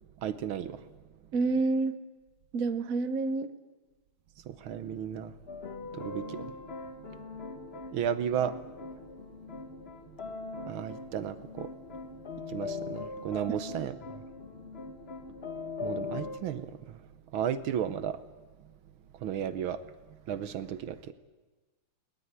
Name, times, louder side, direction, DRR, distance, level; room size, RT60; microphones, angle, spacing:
voice 1, 0.2-0.8 4.5-5.3 5.9-6.4 7.9-8.6 10.7-11.7 12.5-14.2 15.8-17.0 17.3-18.2 19.2-19.8 20.3-21.1, right 9 dB, 75° right, 13 dB, 1.7 m, -34 dB
voice 2, 1.3-2.0 2.5-3.5 13.5-13.6, right 3 dB, 50° right, 11 dB, 1.2 m, -28 dB
sound 1, 5.5-16.4, left 4 dB, 35° left, 1.1 m, -41 dB
22.0 x 19.0 x 9.7 m, 1.3 s
omnidirectional pair, 2.4 m